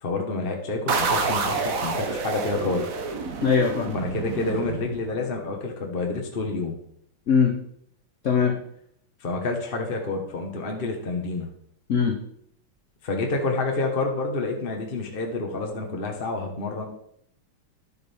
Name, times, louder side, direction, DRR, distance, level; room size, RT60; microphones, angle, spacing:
voice 1, 0.0-2.9 3.9-6.7 9.2-11.5 13.0-16.8, left 3 dB, 30° left, 2 dB, 1.2 m, -28 dB
sound 1, 0.9-5.4, right 4 dB, 50° right, 1.1 m, -28 dB
voice 2, 3.4-4.0 7.3-7.6 8.2-8.5 11.9-12.2, left 6 dB, 55° left, 3 dB, 0.9 m, -21 dB
11.0 x 8.1 x 3.5 m, 0.71 s
omnidirectional pair, 2.3 m